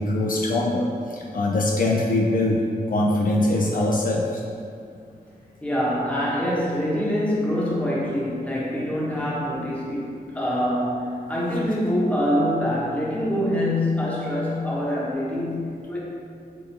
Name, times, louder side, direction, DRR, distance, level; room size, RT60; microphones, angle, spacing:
voice 1, 0.0-2.6 2.9-4.4, left 1 dB, 55° left, -2 dB, 0.4 m, -22 dB
voice 2, 5.6-16.0, equal, 10° left, -6 dB, 1.0 m, -25 dB
7.0 x 2.7 x 2.8 m, 2.4 s
wide cardioid pair, 115°, 17 cm